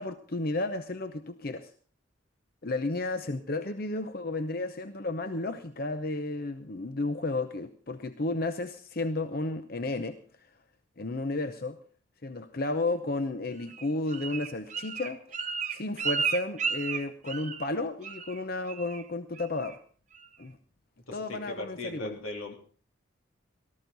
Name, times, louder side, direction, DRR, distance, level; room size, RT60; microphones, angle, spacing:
voice 1, 0.0-1.7 2.6-10.5 11.0-11.8 12.2-15.2 15.7-19.8 20.4-20.6 21.1-22.2, left 2 dB, 45° left, 9 dB, 0.7 m, -33 dB
Bird, 13.7-17.8 18.0-18.4 18.7-19.0 19.4-19.7 20.1-20.2, right 6 dB, 35° right, 1.0 m, -33 dB
voice 2, 21.1-22.5, left 2 dB, 90° left, 2 dB, 3.3 m, -38 dB
18.5 x 13.5 x 4.0 m, 0.42 s
head